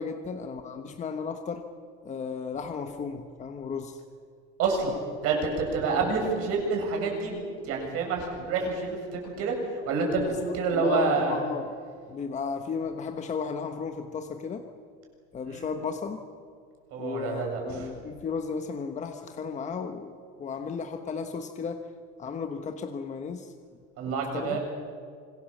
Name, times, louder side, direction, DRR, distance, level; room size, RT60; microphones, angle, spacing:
voice 1, 0.0-1.6 2.0-4.0 5.9-6.1 10.2-10.4 10.7-11.7 12.1-14.6 15.3-16.2 17.0-21.9 22.2-23.5 24.1-24.6, left 5 dB, 25° left, 5 dB, 1.2 m, -34 dB
voice 2, 4.6-11.4 15.5-15.7 16.9-17.9 24.0-24.6, right 4 dB, 55° right, 1 dB, 7.5 m, -28 dB
25.5 x 23.5 x 7.3 m, 2.1 s
cardioid pair, 155°, 29 cm